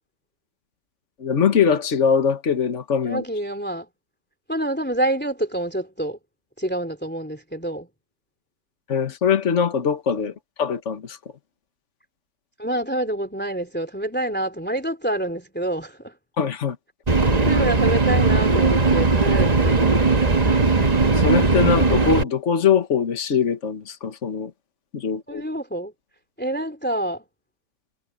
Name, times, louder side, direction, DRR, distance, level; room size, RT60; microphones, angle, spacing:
voice 1, 1.2-3.2 8.9-11.2 16.4-16.8 21.1-24.5 24.9-25.4, left 6 dB, 50° left, 1.8 m, -22 dB
voice 2, 3.1-3.9 4.5-6.2 6.6-7.9 10.2-10.3 12.6-16.1 17.4-19.9 20.5-20.6 25.3-25.9 26.4-27.2, right 1 dB, 5° left, 3.2 m, -27 dB
sound 1, 17.1-22.2, right 3 dB, 25° right, 1.4 m, -18 dB
omnidirectional pair, 1.7 m